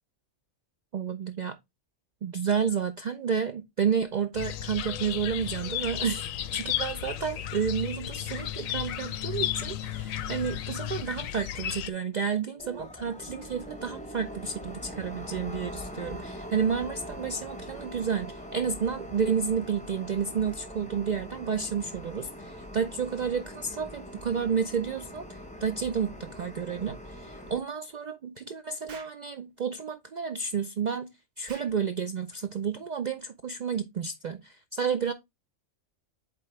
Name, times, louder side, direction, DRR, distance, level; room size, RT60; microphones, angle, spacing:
voice 1, 0.9-1.6 2.2-31.1 31.4-35.1, right 6 dB, 80° right, 0.4 m, -31 dB
sound 1, 4.3-11.9, left 11 dB, 90° left, 1.0 m, -34 dB
sound 2, 12.6-27.6, equal, 5° left, 0.7 m, -42 dB
Explosion, 28.9-29.2 31.5-31.8, right 5 dB, 45° right, 0.7 m, -47 dB
8.2 x 3.9 x 3.1 m
omnidirectional pair, 1.4 m